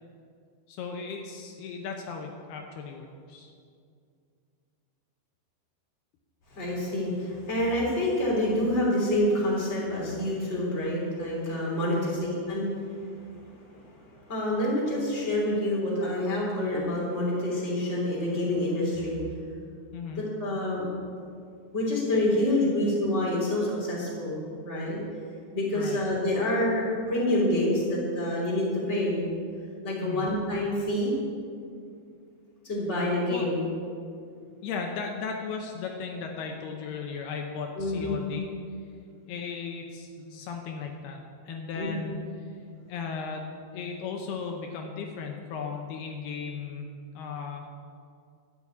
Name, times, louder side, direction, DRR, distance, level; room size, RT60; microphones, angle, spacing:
voice 1, 0.7-3.5 11.9-12.2 19.9-20.2 25.7-26.0 30.0-30.3 33.3-33.5 34.6-38.5 39.3-41.2 41.4-42.2 42.9-46.9 47.2-47.7, left 5 dB, 80° left, 2 dB, 2.8 m, -36 dB
voice 2, 6.5-12.7 14.2-19.2 20.1-20.9 21.7-25.0 25.5-29.2 29.8-31.1 32.6-33.6 37.8-38.2 41.7-42.0, left 1 dB, 20° left, -5 dB, 3.0 m, -27 dB
12.0 x 7.0 x 8.3 m, 2.3 s
omnidirectional pair, 4.7 m